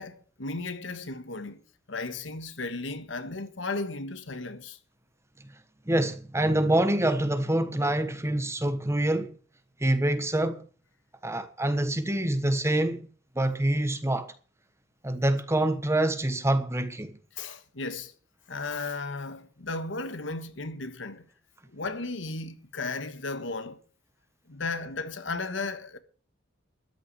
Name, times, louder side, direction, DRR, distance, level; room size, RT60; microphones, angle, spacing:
voice 1, 0.0-1.6 1.9-4.8 17.3-18.1 18.5-21.3 21.7-23.8 24.5-26.0, left 3 dB, 75° left, 1.5 m, -35 dB
voice 2, 5.9-9.3 9.8-10.6 11.2-13.1 13.3-14.3 15.0-17.2, right 1 dB, 15° right, 1.2 m, -26 dB
13.0 x 6.2 x 9.6 m
head